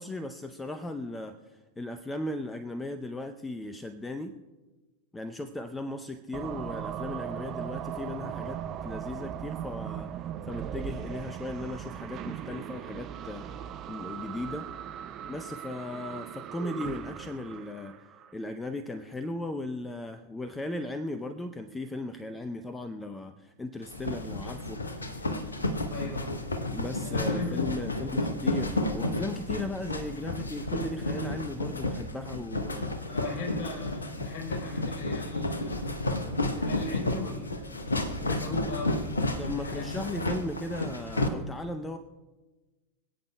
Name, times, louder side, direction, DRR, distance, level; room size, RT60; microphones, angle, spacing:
voice 1, 0.0-4.3 5.1-14.7 15.3-25.0 26.7-32.9 39.4-42.0, left 2 dB, 10° left, 9 dB, 0.6 m, -37 dB
sound 1, 6.3-18.3, right 9 dB, 30° right, 0.6 m, -38 dB
sound 2, 23.8-41.3, left 2 dB, 75° left, 0.9 m, -32 dB
voice 2, 25.9-26.4 27.0-27.5 27.8-28.1 33.0-35.9 36.6-37.8 38.2-40.0, left 2 dB, 45° left, -1 dB, 3.5 m, -38 dB
26.0 x 8.7 x 2.2 m, 1.2 s
figure-of-eight pair, 90°, 0 cm